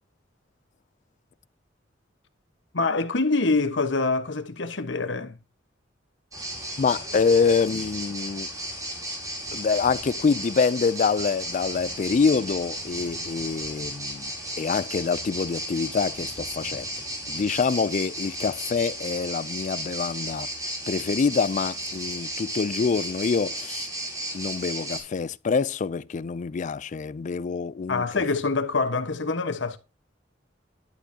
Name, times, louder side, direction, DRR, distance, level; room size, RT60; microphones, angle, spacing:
voice 1, 2.7-5.4 27.9-29.8, left 3 dB, 75° left, 1.2 m, -25 dB
sound 1, 6.3-25.0, right 1 dB, 20° right, 3.1 m, -34 dB
voice 2, 6.8-8.5 9.5-14.3 14.6-16.9 17.3-20.5 20.9-23.9 24.3-28.2, left 5 dB, 40° left, 0.4 m, -25 dB
11.5 x 7.0 x 2.8 m
head